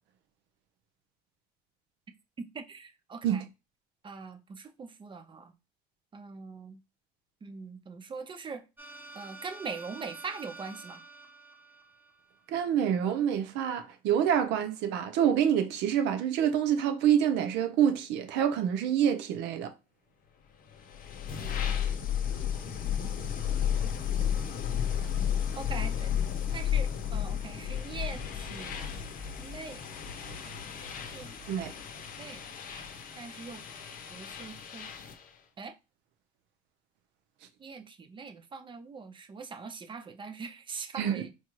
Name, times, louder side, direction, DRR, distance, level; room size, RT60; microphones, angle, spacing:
voice 1, 2.5-3.5 4.0-5.5 6.1-6.8 7.4-8.6 9.1-11.0 25.6-26.1 26.5-28.8 29.4-29.8 30.2-30.4 31.1-31.4 32.2-32.4 33.2-33.6 34.1-34.9 35.6-35.8 37.6-41.3, right 4 dB, 25° right, 0.5 m, -42 dB
sound 1, 8.8-12.7, right 3 dB, 10° right, 1.1 m, -48 dB
voice 2, 12.5-19.7 31.5-31.7 41.0-41.3, right 9 dB, 75° right, 0.6 m, -27 dB
sound 2, 20.7-35.3, left 9 dB, 50° left, 0.7 m, -33 dB
4.3 x 2.3 x 3.0 m
supercardioid pair, 90°, 18 cm